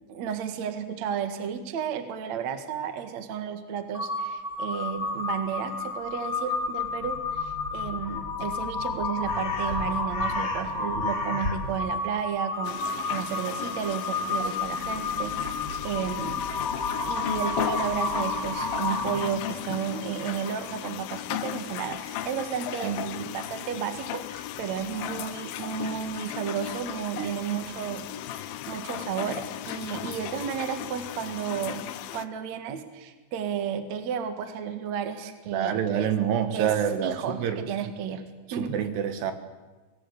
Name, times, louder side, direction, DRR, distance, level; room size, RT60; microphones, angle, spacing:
voice 1, 0.1-15.5 15.8-16.4 17.1-28.1 28.3-31.8 32.1-36.1 36.5-36.7 37.0-38.2 38.5-38.7, right 8 dB, 50° right, 8 dB, 2.3 m, -33 dB
Crow, 3.9-19.4, left 3 dB, 30° left, 1.5 m, -31 dB
sound 1, 12.6-32.3, left 12 dB, 75° left, 2.2 m, -36 dB
voice 2, 22.8-23.2 27.2-27.3 35.5-37.6 38.6-39.3, right 9 dB, 70° right, 9 dB, 3.4 m, -27 dB
25.5 x 19.5 x 8.3 m, 1.3 s
omnidirectional pair, 5.2 m